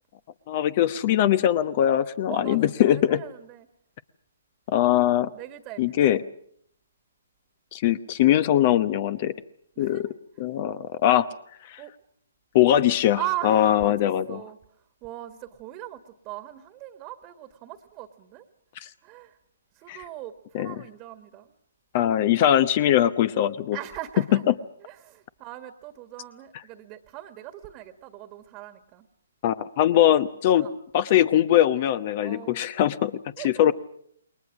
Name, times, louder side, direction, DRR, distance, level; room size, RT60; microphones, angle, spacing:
voice 1, 0.5-3.2 4.7-5.3 5.8-6.2 7.7-9.3 9.8-10.1 10.4-11.3 11.7-11.8 12.5-14.4 19.9-20.0 20.5-20.7 21.9-23.8 29.4-30.7 30.9-33.1 33.4-33.7, left 11 dB, 35° left, 15 dB, 0.9 m, -21 dB
voice 2, 2.3-3.7 5.3-6.2 9.7-10.2 11.8-11.9 13.2-18.5 19.0-19.4 19.7-21.5 23.7-24.5 24.8-29.1 30.0-30.1 30.6-30.8 32.2-32.7 33.4-33.7, right 15 dB, 25° right, 9 dB, 1.7 m, -39 dB
28.5 x 22.0 x 6.2 m, 0.66 s
figure-of-eight pair, 130°, 0 cm